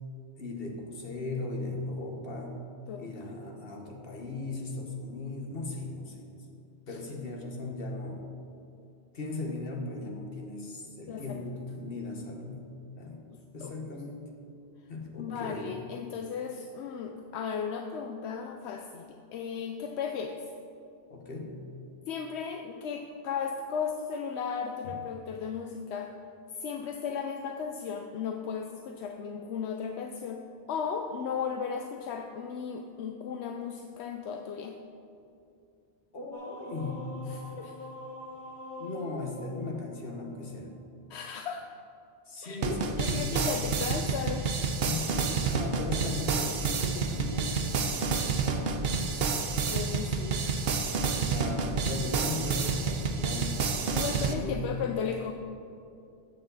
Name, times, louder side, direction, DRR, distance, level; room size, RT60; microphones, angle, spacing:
voice 1, 0.4-2.7 2.9-6.3 6.9-8.2 9.1-13.2 13.5-14.3 14.9-15.7 21.1-21.6 36.1-37.2 38.8-40.7 42.3-43.6 44.8-48.1 51.1-53.6 54.3-54.7, left 2 dB, 60° left, 1 dB, 1.6 m, -37 dB
voice 2, 11.1-11.5 13.3-13.7 15.2-20.4 22.1-26.1 26.5-34.8 37.3-37.7 41.1-41.7 42.4-44.5 48.6-48.7 49.1-49.3 49.7-50.4 53.9-55.3, left 6 dB, 80° left, 5 dB, 0.9 m, -36 dB
sound 1, 36.3-40.5, left 1 dB, 35° left, 3.2 m, -44 dB
sound 2, 42.6-54.3, right 4 dB, 65° right, 1.0 m, -29 dB
13.5 x 8.5 x 4.0 m, 2.6 s
omnidirectional pair, 1.1 m